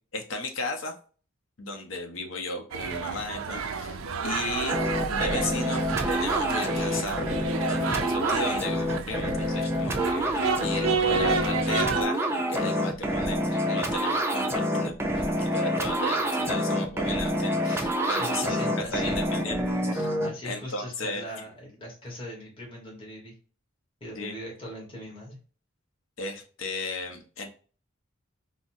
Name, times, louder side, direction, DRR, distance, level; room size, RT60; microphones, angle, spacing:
voice 1, 0.1-0.9 1.6-4.8 5.1-19.6 19.9-20.2 20.4-21.2 24.2-24.3 26.2-27.6, left 2 dB, 70° left, 4 dB, 0.7 m, -35 dB
sound 1, 2.7-12.1, right 5 dB, 80° right, 0.4 m, -30 dB
sound 2, 4.7-20.3, equal, 10° right, 0.4 m, -27 dB
voice 2, 18.1-19.2 20.2-23.3 24.0-25.4, equal, 25° left, -3 dB, 1.2 m, -40 dB
3.9 x 2.0 x 2.6 m, 0.39 s
head